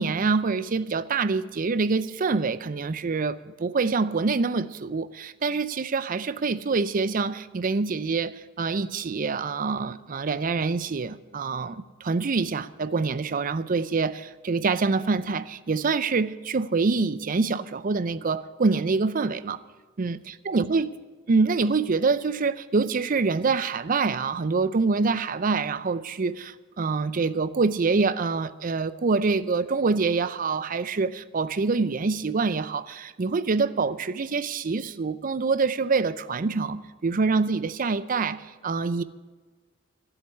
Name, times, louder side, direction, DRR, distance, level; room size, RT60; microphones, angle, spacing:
voice 1, 0.0-19.6 20.0-20.2 20.5-20.9 21.3-39.0, right 4 dB, 45° right, 0.5 m, -25 dB
13.0 x 8.1 x 9.8 m
head